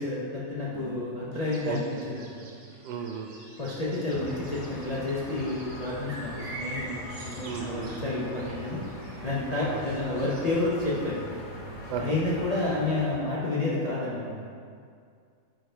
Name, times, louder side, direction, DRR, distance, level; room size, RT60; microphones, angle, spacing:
voice 1, 0.0-2.0 2.3-2.4 3.6-8.8 9.2-11.2 12.0-14.3, left 2 dB, 45° left, -7 dB, 0.5 m, -30 dB
Piano, 0.7-3.5, right 1 dB, 5° right, 0.7 m, -50 dB
sound 1, 1.3-11.5, right 1 dB, 55° right, 1.0 m, -46 dB
voice 2, 2.8-3.3 7.4-7.9 9.7-9.8 11.9-12.1, right 6 dB, 90° right, 4 dB, 1.2 m, -34 dB
sound 2, 4.1-13.2, left 1 dB, 30° left, 1.0 m, -41 dB
4.9 x 4.6 x 4.4 m, 2.2 s
omnidirectional pair, 1.7 m